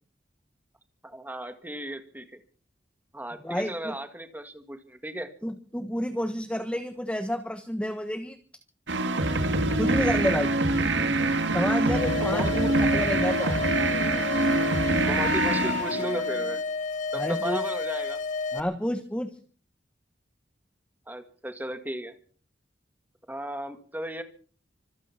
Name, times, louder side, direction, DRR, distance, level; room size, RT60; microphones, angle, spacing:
voice 1, 1.0-2.4 3.1-5.3 12.2-12.7 13.4-13.6 15.1-16.6 17.1-18.2 21.1-22.1 23.3-24.2, right 1 dB, 10° right, 9 dB, 1.8 m, -35 dB
voice 2, 3.4-3.9 5.4-8.4 9.8-10.5 11.5-12.7 12.9-13.5 17.2-17.6 18.5-19.3, equal, 5° left, 8 dB, 1.2 m, -29 dB
sound 1, 8.9-16.6, right 2 dB, 75° right, 2.3 m, -25 dB
sound 2, 11.9-18.6, left 4 dB, 45° left, 1.7 m, -31 dB
25.5 x 9.3 x 5.9 m, 0.44 s
head